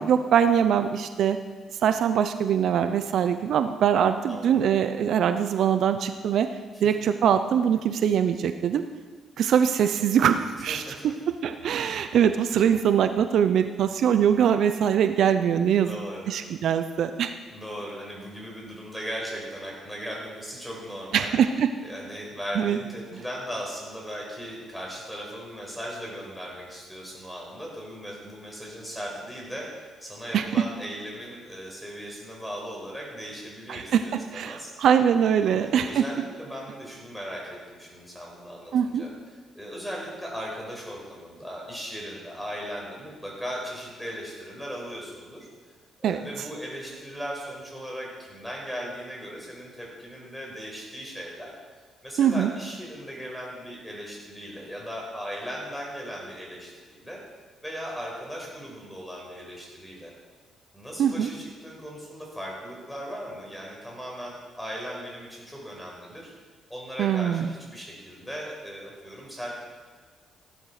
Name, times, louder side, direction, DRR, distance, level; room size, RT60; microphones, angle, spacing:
voice 1, 0.0-1.4 1.8-6.5 6.8-8.8 9.4-15.9 16.3-17.3 21.1-21.7 22.6-22.8 30.3-30.5 33.7-36.0 38.7-39.0 46.0-46.2 52.2-52.5 61.0-61.3 67.0-67.5, right 8 dB, 70° right, 9 dB, 0.7 m, -23 dB
voice 2, 4.3-4.7 10.7-11.1 15.8-16.3 17.5-21.3 21.8-29.7 30.0-34.7 35.4-39.1 39.5-45.7 46.0-51.5 52.0-57.2 57.6-60.1 60.7-66.3 66.7-69.6, equal, 5° left, -2 dB, 5.7 m, -38 dB
16.0 x 11.5 x 5.0 m, 1.4 s
cardioid pair, 90°, 0 cm